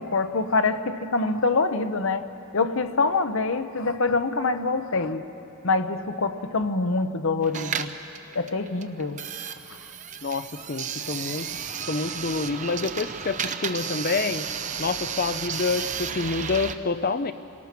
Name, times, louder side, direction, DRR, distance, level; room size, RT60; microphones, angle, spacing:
voice 1, 0.0-2.2 2.5-5.2 5.6-7.9 8.3-9.2, left 3 dB, 65° left, 9 dB, 0.8 m, -25 dB
sound 1, 7.4-16.8, right 7 dB, 35° right, 0.6 m, -33 dB
voice 2, 10.2-11.6 11.9-14.5 14.8-17.3, left 4 dB, 45° left, 12 dB, 0.5 m, -27 dB
28.0 x 18.5 x 6.0 m, 2.9 s
head